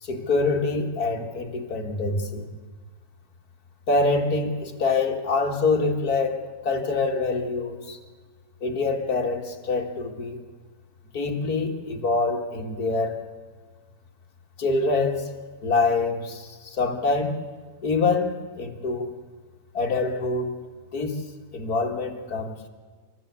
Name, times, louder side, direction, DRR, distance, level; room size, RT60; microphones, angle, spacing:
voice 1, 0.0-2.5 3.9-8.0 8.6-10.4 11.1-13.2 14.6-15.3 15.6-17.4 17.8-19.1 19.7-20.6 20.9-21.3 21.5-22.7, left 3 dB, 35° left, 3 dB, 1.9 m, -25 dB
27.5 x 14.5 x 8.3 m, 1.5 s
omnidirectional pair, 3.6 m